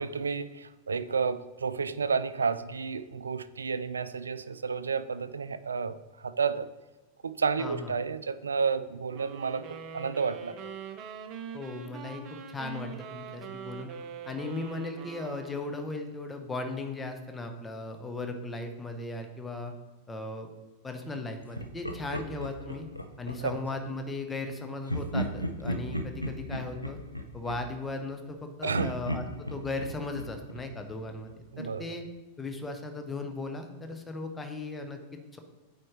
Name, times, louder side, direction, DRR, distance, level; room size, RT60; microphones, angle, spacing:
voice 1, 0.0-6.7 7.2-10.5 23.4-23.6 28.6-28.9 31.5-32.0, right 5 dB, 75° right, 15 dB, 0.3 m, -31 dB
voice 2, 7.6-7.9 11.5-13.9 14.3-19.7 20.1-20.5 20.8-22.9 23.2-27.0 27.3-32.0 32.4-35.4, left 2 dB, 10° left, 5 dB, 0.9 m, -37 dB
sound 1, 9.1-15.9, right 6 dB, 35° right, 0.8 m, -43 dB
Laughter, 21.5-23.7 24.9-28.4 28.7-31.5, equal, 90° left, 0.5 m, -36 dB
8.7 x 4.3 x 3.2 m, 1.1 s
figure-of-eight pair, 90°, 0 cm